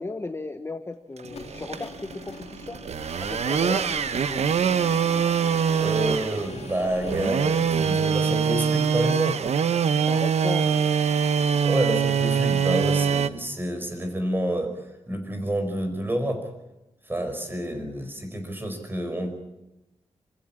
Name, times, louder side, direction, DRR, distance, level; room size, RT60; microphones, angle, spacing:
voice 1, 0.0-2.8 3.2-4.5 10.1-10.8 17.9-18.0, left 3 dB, 20° left, 7 dB, 1.0 m, -35 dB
sound 1, 1.2-9.2, left 6 dB, 85° left, 1.9 m, -44 dB
sound 2, 1.2-13.3, right 7 dB, 85° right, 1.0 m, -24 dB
voice 2, 5.8-9.5 11.6-16.4 17.1-19.3, right 1 dB, 20° right, 6 dB, 5.0 m, -29 dB
26.5 x 16.0 x 8.7 m, 0.95 s
wide cardioid pair, 140°, 11 cm